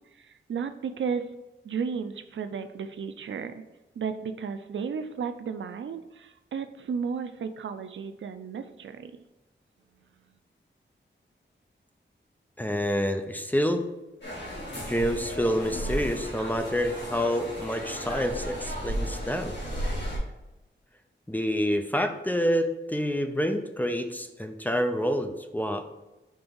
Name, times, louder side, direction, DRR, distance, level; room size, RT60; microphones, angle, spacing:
voice 1, 0.1-1.3 1.6-3.6 4.0-9.1, right 6 dB, 80° right, 9 dB, 0.4 m, -33 dB
voice 2, 12.6-13.9 14.9-19.5 21.3-25.9, equal, 10° left, 6 dB, 0.5 m, -27 dB
sound 1, 14.2-20.2, equal, 65° left, 2.1 m, -34 dB
5.4 x 3.4 x 5.3 m, 1.0 s
wide cardioid pair, 130°, 20 cm